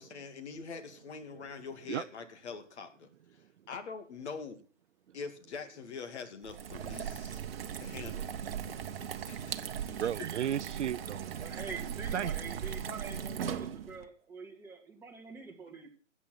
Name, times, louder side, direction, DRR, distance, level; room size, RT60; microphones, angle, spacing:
voice 1, 0.0-3.4 3.7-4.6 5.1-7.4 7.8-8.2 9.3-9.5 10.0-10.1, left 5 dB, 55° left, 2.5 m, -44 dB
sound 1, 6.4-14.0, right 8 dB, 45° right, 1.1 m, -38 dB
voice 2, 9.2-11.5 12.1-12.3, right 10 dB, 60° right, 0.5 m, -35 dB
voice 3, 11.4-15.9, right 4 dB, 5° right, 2.2 m, -45 dB
14.0 x 8.3 x 6.0 m
hypercardioid pair, 140°, 40 cm